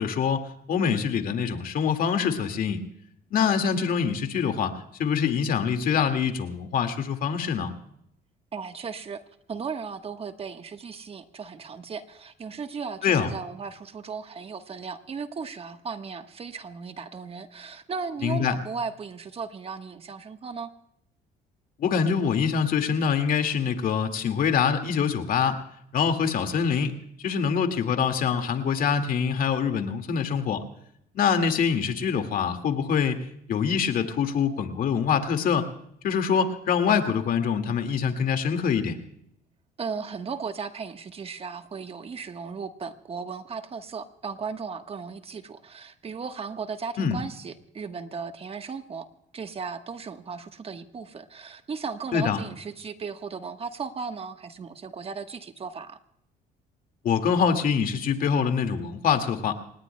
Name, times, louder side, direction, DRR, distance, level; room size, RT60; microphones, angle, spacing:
voice 1, 0.0-2.8 3.3-4.7 5.0-7.7 13.0-13.3 18.2-18.6 21.8-25.6 25.9-30.6 31.1-35.7 36.0-39.0 47.0-47.2 52.1-52.4 57.0-59.5, left 7 dB, 55° left, 7 dB, 2.0 m, -25 dB
voice 2, 8.5-9.2 9.5-20.7 39.8-49.1 49.3-56.0, right 5 dB, 35° right, 8 dB, 1.2 m, -36 dB
28.0 x 19.0 x 2.2 m, 0.73 s
cardioid pair, 110°, 17 cm